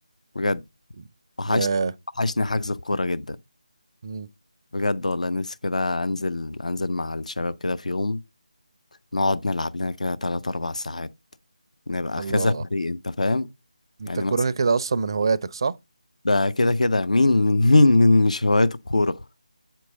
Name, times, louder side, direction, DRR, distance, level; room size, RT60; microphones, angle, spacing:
voice 1, 1.5-1.9 4.0-4.3 12.2-12.6 14.0-15.7, right 4 dB, 35° right, 0.4 m, -25 dB
voice 2, 2.2-3.4 4.7-8.2 9.1-11.1 11.9-13.5 14.1-14.3 16.2-19.2, left 2 dB, 65° left, 0.5 m, -22 dB
7.8 x 4.6 x 3.9 m
figure-of-eight pair, 160°, 4 cm